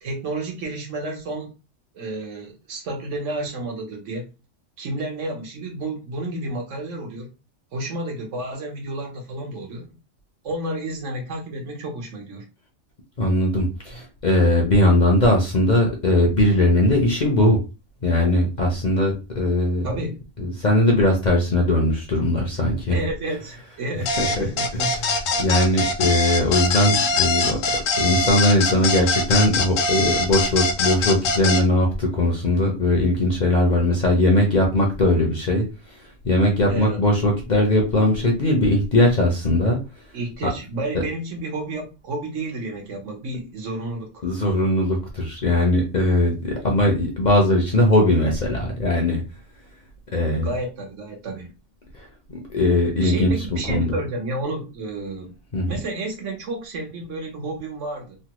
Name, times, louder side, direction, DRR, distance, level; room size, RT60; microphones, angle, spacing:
voice 1, 0.0-1.5 1.9-4.3 4.8-7.3 7.7-9.8 10.4-12.5 19.8-20.2 22.9-24.9 36.7-37.0 40.1-44.2 50.4-51.5 53.0-55.3 55.7-58.2, right 2 dB, 70° right, 1 dB, 1.2 m, -31 dB
voice 2, 13.2-17.6 18.0-19.9 20.4-22.9 24.2-24.5 24.7-24.9 25.4-27.6 28.0-35.6 35.9-36.0 36.2-39.8 40.4-40.5 44.2-49.2 50.1-50.5 51.9-53.3 53.7-53.9 55.5-55.8, left 1 dB, 45° left, 1 dB, 0.6 m, -20 dB
sound 1, 24.1-31.6, left 3 dB, 80° left, 0.9 m, -22 dB
3.2 x 2.2 x 2.9 m, 0.29 s
omnidirectional pair, 1.3 m